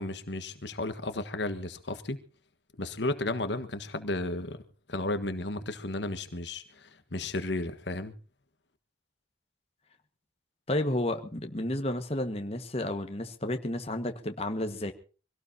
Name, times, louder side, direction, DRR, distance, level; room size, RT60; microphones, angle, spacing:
voice 1, 0.0-2.2 2.8-4.6 4.9-8.1, left 2 dB, 70° left, 1.5 m, -33 dB
voice 2, 10.7-14.9, left 1 dB, 35° left, 1.6 m, -31 dB
25.0 x 17.5 x 2.8 m
head